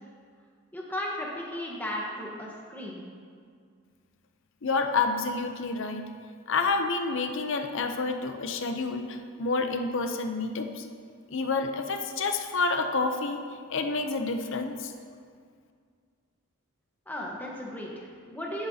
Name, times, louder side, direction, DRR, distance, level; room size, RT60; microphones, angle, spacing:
voice 1, 0.7-3.0 17.1-18.7, left 1 dB, 10° left, -3 dB, 1.1 m, -35 dB
voice 2, 4.6-6.1 6.5-10.9 11.3-13.4 13.7-14.9, left 3 dB, 55° left, 6 dB, 0.6 m, -29 dB
10.5 x 8.7 x 2.8 m, 2.1 s
head